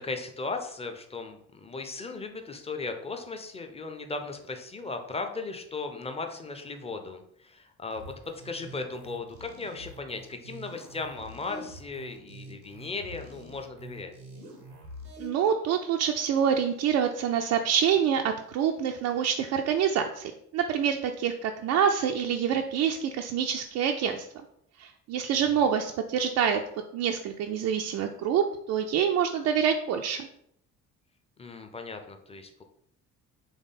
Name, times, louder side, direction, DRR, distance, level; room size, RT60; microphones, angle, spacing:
voice 1, 0.0-8.1 8.4-14.1 25.3-25.7 31.4-32.6, left 3 dB, 15° left, 5 dB, 0.6 m, -37 dB
sound 1, 7.9-15.3, right 1 dB, 85° right, 0.9 m, -46 dB
voice 2, 15.2-24.3 24.8-26.6 26.9-30.3, right 8 dB, 40° right, 3 dB, 0.4 m, -26 dB
3.5 x 3.4 x 4.0 m, 0.72 s
figure-of-eight pair, 50°, 46 cm